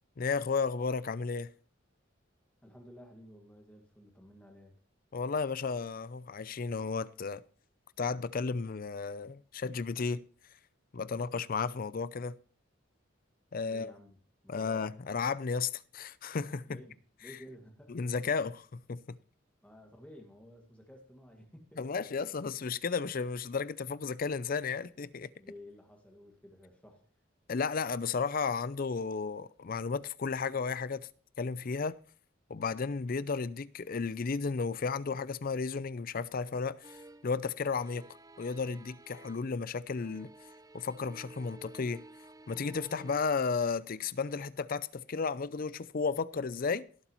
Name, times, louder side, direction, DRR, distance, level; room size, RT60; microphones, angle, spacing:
voice 1, 0.2-1.5 5.1-7.4 8.0-10.2 10.9-12.4 13.5-13.9 14.5-16.8 17.9-19.2 21.8-25.3 27.5-31.1 31.4-32.0 32.5-37.0 37.2-38.1 38.4-40.3 40.7-42.0 42.5-46.8, left 5 dB, 45° left, 0.5 m, -33 dB
voice 2, 2.6-4.8 13.7-14.2 14.4-14.8 16.6-18.0 19.6-22.3 25.4-27.1, equal, 5° left, 1.9 m, -53 dB
sound 1, 36.8-37.4 37.6-39.6 39.9-43.6 44.2-44.5, right 2 dB, 20° right, 0.5 m, -53 dB
17.5 x 8.1 x 3.0 m
head